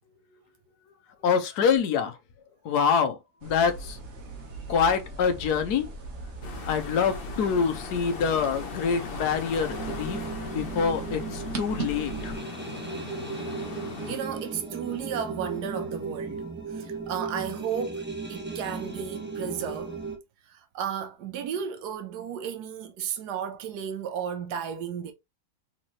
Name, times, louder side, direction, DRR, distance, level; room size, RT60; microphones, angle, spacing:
voice 1, 1.2-2.1 2.6-4.0 4.7-5.9 6.7-12.3, left 6 dB, 80° left, 1.4 m, -26 dB
sound 1, 3.4-12.4, right 2 dB, 50° right, 1.4 m, -39 dB
sound 2, 6.4-14.2, left 5 dB, 45° left, 0.9 m, -40 dB
sound 3, 9.7-20.2, right 4 dB, 10° right, 0.7 m, -36 dB
voice 2, 14.0-20.0 20.5-25.1, right 8 dB, 90° right, 1.3 m, -34 dB
4.4 x 3.8 x 3.0 m
omnidirectional pair, 1.7 m